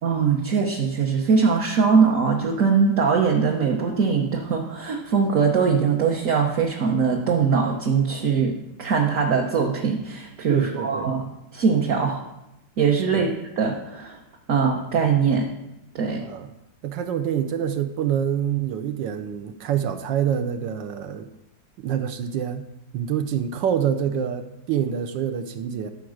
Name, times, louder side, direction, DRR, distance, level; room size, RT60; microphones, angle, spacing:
voice 1, 0.0-12.2 12.8-13.3 13.6-14.2 14.5-15.5 15.9-16.2, right 5 dB, 50° right, -1 dB, 1.2 m, -21 dB
voice 2, 10.5-11.1 13.1-13.3 16.2-16.5 16.8-21.3 21.8-22.6 22.9-25.9, right 9 dB, 75° right, 8 dB, 1.3 m, -26 dB
13.0 x 4.6 x 6.4 m, 0.90 s
omnidirectional pair, 2.1 m